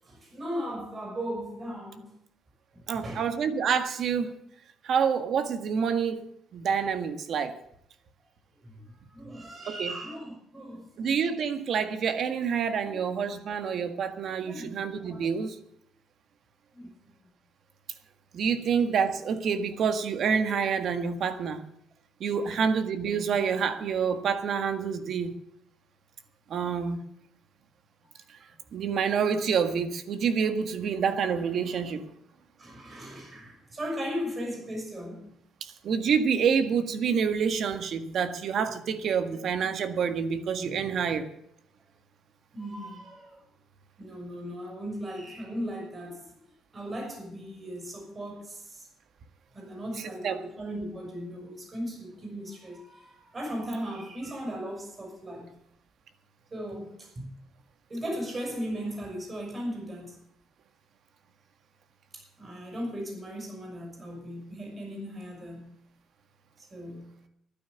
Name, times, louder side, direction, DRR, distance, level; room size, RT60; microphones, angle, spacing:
voice 1, 0.0-2.1 2.7-3.3 8.6-10.9 12.8-13.0 14.5-14.7 15.0-15.2 16.7-17.1 32.6-35.3 42.5-43.4 44.0-46.4 46.7-48.9 49.5-55.5 56.5-57.3 57.9-60.2 62.1-65.7 66.6-67.1, equal, 25° right, 6.4 m, -37 dB
voice 2, 2.9-4.4 4.8-6.3 6.5-7.5 9.7-9.9 11.0-15.6 18.3-21.6 22.2-25.3 26.5-27.0 28.7-32.1 35.6-41.2 50.2-50.4, right 6 dB, 55° right, 1.7 m, -27 dB
11.5 x 10.0 x 8.1 m
cardioid pair, 125°, 0 cm